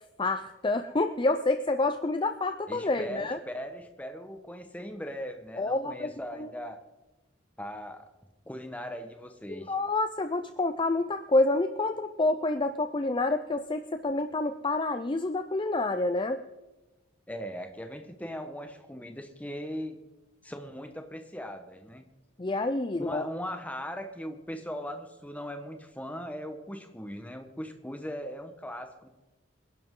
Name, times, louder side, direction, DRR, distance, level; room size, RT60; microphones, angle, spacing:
voice 1, 0.2-3.4 5.6-6.1 6.4-6.5 9.7-16.4 22.4-23.2, left 2 dB, 25° left, 9 dB, 0.5 m, -28 dB
voice 2, 2.7-6.8 7.6-8.1 8.5-9.7 17.3-20.0 20.4-22.1 23.0-29.1, equal, 10° left, 6 dB, 1.2 m, -39 dB
25.5 x 11.0 x 3.8 m, 1.1 s
head